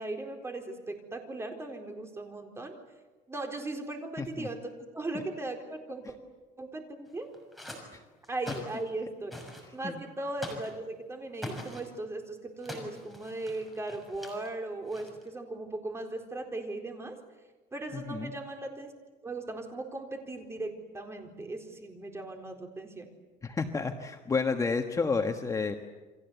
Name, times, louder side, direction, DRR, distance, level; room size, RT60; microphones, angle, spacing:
voice 1, 0.0-2.8 3.3-6.1 6.6-7.3 8.3-9.3 9.7-17.2 17.7-18.9 19.2-23.1, right 2 dB, 15° right, 3 dB, 4.2 m, -38 dB
voice 2, 4.2-4.5 7.9-8.0 9.8-10.0 17.9-18.3 23.4-25.8, left 4 dB, 20° left, 5 dB, 1.4 m, -30 dB
sound 1, 7.1-7.8 8.2-8.9 9.3-9.7 10.4-10.7 11.3-11.8 12.6-14.5 14.9-15.3, equal, ahead, 6.2 m, -43 dB
29.5 x 24.5 x 8.2 m, 1.3 s
cardioid pair, 140°, 16 cm